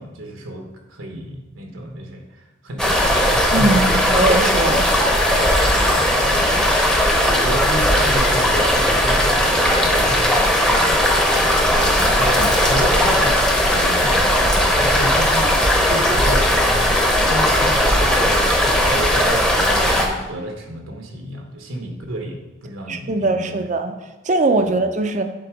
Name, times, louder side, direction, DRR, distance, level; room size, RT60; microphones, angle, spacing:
voice 1, 0.0-4.3 4.9-5.0 5.3-6.7 7.3-11.4 11.7-15.6 15.9-16.5 17.3-23.6 24.6-24.8, right 1 dB, 80° right, 3 dB, 1.1 m, -31 dB
sound 1, 2.8-20.1, equal, 5° left, 0.8 m, -17 dB
voice 2, 3.5-4.9 12.4-12.5 22.9-23.9 24.3-25.2, right 2 dB, 35° right, 7 dB, 0.5 m, -20 dB
7.7 x 4.2 x 4.9 m, 1.1 s
head